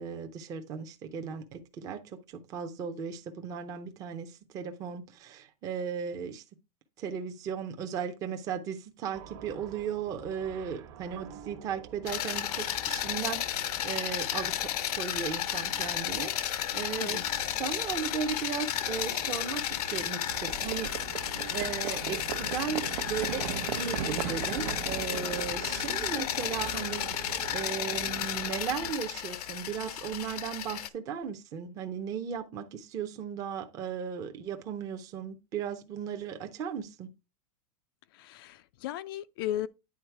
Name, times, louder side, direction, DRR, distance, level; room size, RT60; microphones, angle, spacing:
voice 1, 0.0-6.4 7.0-17.2 17.6-20.9 21.5-23.5 23.7-37.1, right 7 dB, 20° right, 0.6 m, -36 dB
sound 1, 9.1-21.7, right 7 dB, 45° right, 1.2 m, -50 dB
sound 2, 12.1-30.9, left 11 dB, 85° left, 0.8 m, -33 dB
Livestock farm animals working animals, 20.3-28.9, right 9 dB, 80° right, 0.9 m, -38 dB
voice 2, 38.2-39.7, left 13 dB, 40° left, 0.4 m, -35 dB
9.5 x 4.0 x 4.5 m
supercardioid pair, 175°, 19 cm